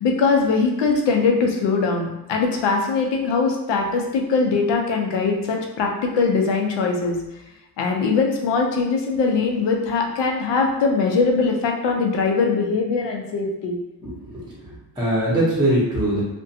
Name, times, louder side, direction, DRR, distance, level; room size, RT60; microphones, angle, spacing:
voice 1, 0.0-7.2 7.8-13.8, left 4 dB, 85° left, 2 dB, 0.6 m, -21 dB
voice 2, 14.0-14.6 15.0-16.2, right 1 dB, 10° right, -7 dB, 0.7 m, -21 dB
2.5 x 2.2 x 2.6 m, 0.94 s
cardioid pair, 125°, 42 cm